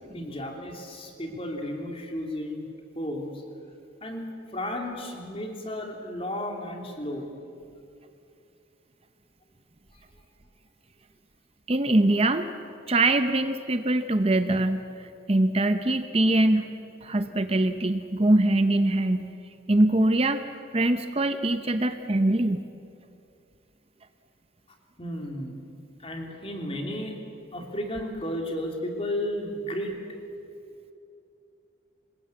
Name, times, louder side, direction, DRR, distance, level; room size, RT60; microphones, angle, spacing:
voice 1, 0.1-2.6 2.9-3.4 4.0-4.3 4.5-7.3 9.9-10.0 25.0-25.6 26.0-27.2 27.5-30.0, left 1 dB, 30° left, 2 dB, 3.0 m, -33 dB
voice 2, 11.7-12.5 12.9-16.7 17.0-19.4 19.7-20.4 20.7-22.6, right 1 dB, 30° right, 9 dB, 0.7 m, -23 dB
26.0 x 21.0 x 8.4 m, 2.6 s
head